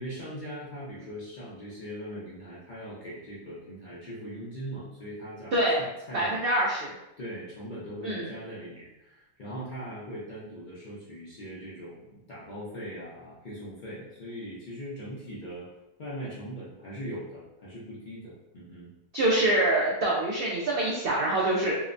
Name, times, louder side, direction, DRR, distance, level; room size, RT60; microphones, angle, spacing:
voice 1, 0.0-6.4 7.2-15.7 16.0-18.9, equal, 70° left, -8 dB, 0.4 m, -40 dB
voice 2, 5.5-5.8 6.1-6.9 8.0-8.3 19.1-21.7, right 1 dB, 90° right, -4 dB, 0.5 m, -25 dB
2.8 x 2.1 x 2.5 m, 0.94 s
omnidirectional pair, 1.5 m